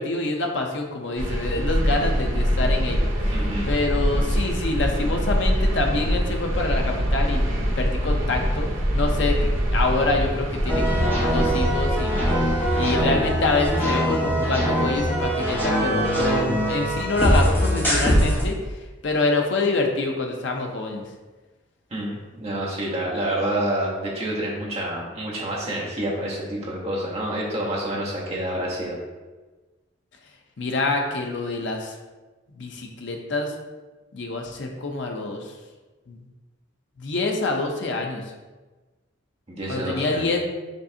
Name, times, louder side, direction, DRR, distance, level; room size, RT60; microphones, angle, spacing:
voice 1, 0.0-3.4 3.6-8.7 8.9-12.2 12.7-18.6 19.0-21.0 30.6-31.9 32.6-33.5 34.1-35.5 36.1-36.2 37.0-38.2 39.7-40.5, left 3 dB, 65° left, 2 dB, 0.6 m, -26 dB
sound 1, 1.2-13.7, equal, 90° right, 0.8 m, -24 dB
voice 2, 3.3-4.4 21.9-29.0 39.5-40.3, right 1 dB, 30° right, -4 dB, 1.0 m, -28 dB
sound 2, 10.7-18.4, equal, 10° left, 1.0 m, -22 dB
5.3 x 3.2 x 2.7 m, 1.2 s
head